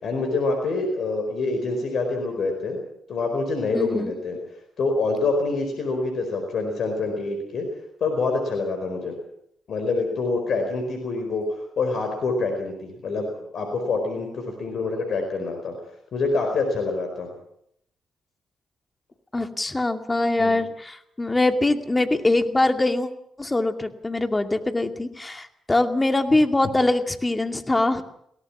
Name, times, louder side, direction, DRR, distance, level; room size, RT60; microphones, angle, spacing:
voice 1, 0.0-2.8 3.1-4.4 4.8-7.7 8.0-9.2 9.7-15.7 16.1-17.3 20.4-20.6, left 3 dB, 60° left, 4 dB, 4.7 m, -26 dB
voice 2, 3.7-4.1 19.3-23.1 23.4-28.0, left 2 dB, 25° left, 6 dB, 2.4 m, -23 dB
22.5 x 17.5 x 7.3 m, 0.72 s
hypercardioid pair, 40°, 0 cm